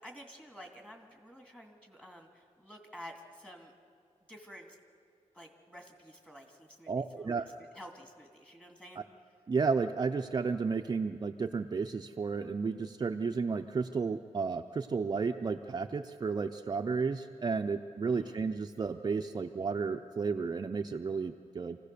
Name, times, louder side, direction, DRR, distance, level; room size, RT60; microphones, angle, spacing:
voice 1, 0.0-3.7 4.3-4.8 5.3-9.1 18.0-18.4, equal, 10° left, 2 dB, 2.3 m, -51 dB
voice 2, 6.9-7.5 9.5-21.8, right 5 dB, 35° right, 4 dB, 0.5 m, -32 dB
27.0 x 16.0 x 6.8 m, 2.2 s
wide cardioid pair, 150°, 13 cm